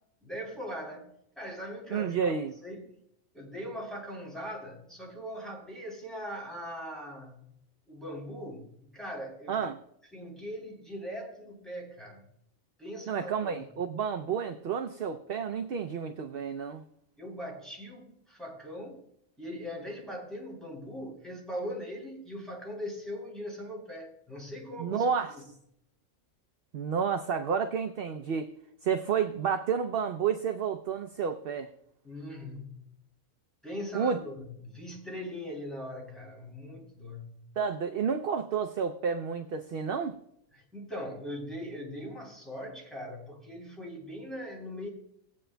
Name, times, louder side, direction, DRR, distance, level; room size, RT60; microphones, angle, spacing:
voice 1, 0.2-2.4 2.6-3.0 3.3-7.4 7.9-9.6 10.1-12.3 12.8-13.6 17.2-19.0 19.4-25.4 32.0-32.8 33.6-37.4 40.5-44.9, equal, ahead, -3 dB, 3.4 m, -40 dB
voice 2, 1.9-2.5 9.5-9.8 13.1-16.8 24.8-25.3 26.7-28.5 28.8-31.7 33.9-34.2 37.6-40.2, right 6 dB, 55° right, 7 dB, 0.7 m, -30 dB
19.5 x 8.5 x 2.2 m, 0.74 s
omnidirectional pair, 1.3 m